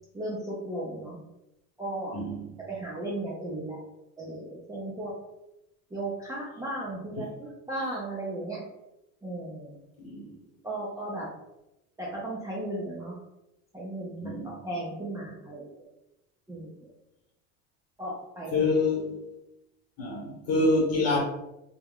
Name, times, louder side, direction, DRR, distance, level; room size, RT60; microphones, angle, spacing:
voice 1, 0.1-1.2 1.8-2.2 2.7-3.8 4.2-5.1 5.9-8.6 9.2-9.8 10.6-11.3 12.0-13.2 13.7-15.9 16.5-16.7 18.0-18.6, right 1 dB, 10° right, -6 dB, 0.6 m, -35 dB
voice 2, 2.1-2.5 10.0-10.3 14.2-14.5 18.5-19.2 20.0-21.2, left 2 dB, 40° left, -1 dB, 1.1 m, -26 dB
2.2 x 2.2 x 3.5 m, 0.90 s
supercardioid pair, 110°, 37 cm